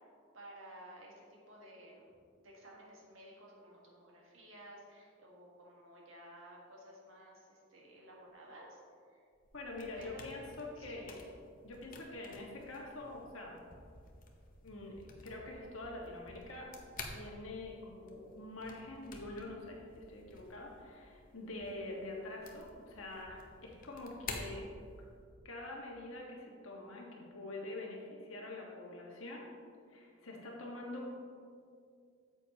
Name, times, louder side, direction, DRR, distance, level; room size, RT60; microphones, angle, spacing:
voice 1, 0.3-2.1 2.4-8.8 9.1-9.3 10.0-10.3 10.8-10.9, right 1 dB, 70° right, -3 dB, 1.7 m, -54 dB
sound 1, 9.3-25.3, left 3 dB, 40° left, 0.8 m, -52 dB
voice 2, 9.5-11.3 11.6-13.6 14.6-16.7 17.1-24.7 25.4-29.4 29.9-31.1, left 2 dB, 75° left, -2 dB, 1.5 m, -45 dB
8.9 x 7.1 x 2.9 m, 2.3 s
head